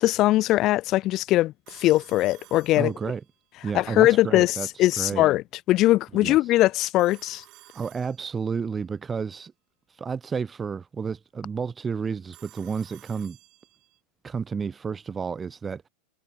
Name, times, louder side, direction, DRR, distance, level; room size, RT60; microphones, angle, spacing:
voice 1, 0.0-2.9 3.7-7.4, left 16 dB, 45° left, 0.8 m, -21 dB
Telephone, 1.7-3.4 7.0-8.7 12.3-14.0, right 19 dB, 45° right, 7.7 m, -53 dB
voice 2, 2.8-3.2 3.6-4.7 5.0-5.3 6.1-6.4 7.7-9.5 9.9-13.4 14.2-15.9, right 5 dB, 20° right, 2.7 m, -31 dB
hypercardioid pair, 120°, 0 cm